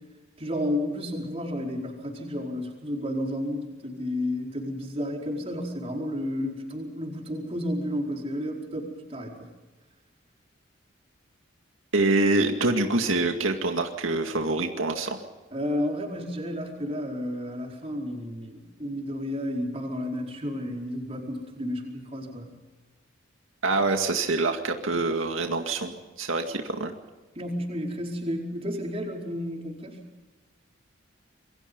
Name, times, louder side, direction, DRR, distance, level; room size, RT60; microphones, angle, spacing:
voice 1, 0.4-9.3 15.5-22.6 27.3-30.0, left 1 dB, 30° right, 0 dB, 4.8 m, -32 dB
voice 2, 11.9-15.2 23.6-26.9, right 2 dB, 90° right, 4 dB, 2.2 m, -25 dB
27.0 x 23.5 x 5.4 m, 1.2 s
head